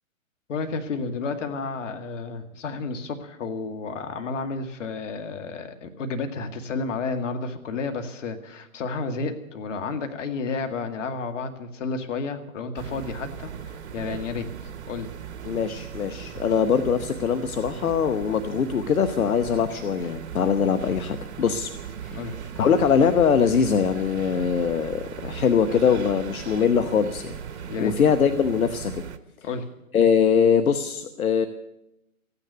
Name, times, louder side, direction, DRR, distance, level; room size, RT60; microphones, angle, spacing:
voice 1, 0.5-13.5 13.9-14.5 14.9-15.1 22.1-22.3 27.6-27.9 29.4-29.7, left 4 dB, 60° left, 6 dB, 2.1 m, -31 dB
sound 1, 12.7-29.2, right 8 dB, 50° right, 1.2 m, -38 dB
voice 2, 15.4-21.7 22.0-27.3 27.8-29.0 29.9-31.5, left 7 dB, 75° left, 8 dB, 1.1 m, -22 dB
14.5 x 9.9 x 9.3 m, 0.87 s
hypercardioid pair, 140°, 42 cm